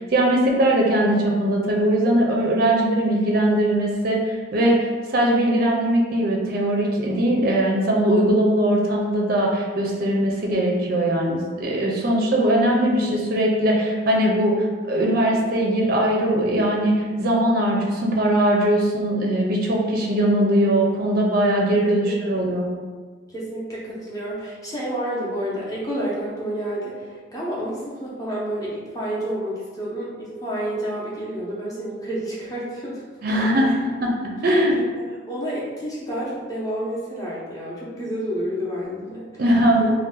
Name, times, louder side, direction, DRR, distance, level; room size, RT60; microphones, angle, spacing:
voice 1, 0.0-14.5 14.9-22.7 33.2-34.8 39.4-39.9, right 1 dB, 45° right, -1 dB, 0.5 m, -20 dB
voice 2, 21.8-22.2 23.3-33.4 33.6-33.8 35.3-39.4 39.8-39.9, right 1 dB, 15° left, -6 dB, 0.7 m, -30 dB
2.6 x 2.1 x 3.8 m, 1.5 s
head